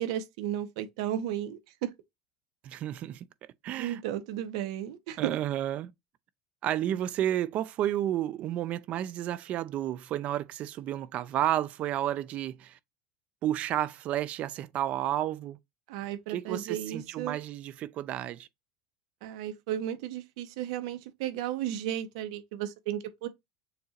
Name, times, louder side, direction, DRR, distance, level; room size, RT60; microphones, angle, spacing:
voice 1, 0.0-1.9 3.8-5.4 15.9-17.4 19.2-23.3, right 11 dB, 75° right, 0.9 m, -34 dB
voice 2, 2.6-3.2 3.6-4.0 5.2-5.9 6.6-12.8 13.4-15.6 16.3-18.5, right 12 dB, 45° right, 0.5 m, -31 dB
6.7 x 2.8 x 2.5 m
supercardioid pair, 115°, 3 cm